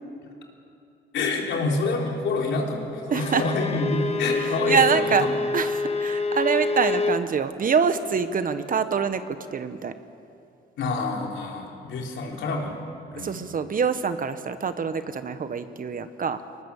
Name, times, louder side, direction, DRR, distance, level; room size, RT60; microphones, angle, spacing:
voice 1, 1.1-5.3 10.8-12.8 13.1-13.4, left 3 dB, 70° left, 0 dB, 3.8 m, -27 dB
Bowed string instrument, 3.1-7.3, left 3 dB, 30° left, 1.3 m, -27 dB
voice 2, 3.1-3.4 4.7-5.3 5.5-9.2 9.5-9.9 13.2-16.4, right 6 dB, 45° right, 11 dB, 1.2 m, -25 dB
23.5 x 19.0 x 7.2 m, 2.6 s
cardioid pair, 90°, 20 cm